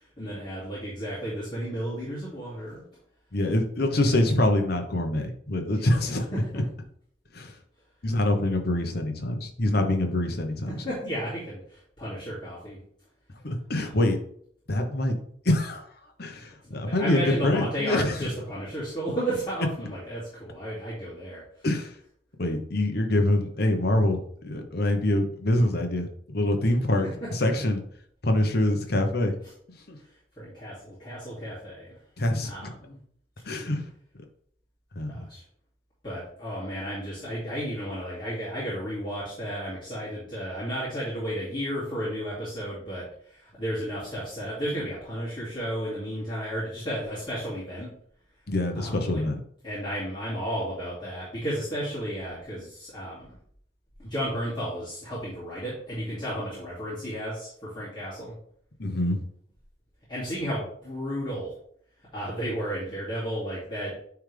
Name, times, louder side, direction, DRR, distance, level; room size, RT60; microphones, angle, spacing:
voice 1, 0.0-2.8 5.7-5.8 10.7-12.8 13.9-14.0 16.6-21.4 30.4-31.9 32.4-33.0 35.1-35.4 36.0-47.9 48.7-49.2 49.6-53.3 54.0-58.3 60.1-61.5 62.1-63.9, equal, 25° left, -11 dB, 2.5 m, -33 dB
voice 2, 3.3-6.6 7.3-7.5 8.0-10.9 13.4-14.2 14.7-15.2 15.4-15.8 16.2-18.3 21.6-21.9 22.4-27.1 27.3-27.8 28.2-29.3 29.9-30.0 32.2-32.7 33.4-33.8 35.0-35.2 48.5-49.4 58.8-59.2, left 1 dB, 55° left, 4 dB, 1.0 m, -25 dB
9.6 x 3.5 x 3.4 m, 0.64 s
head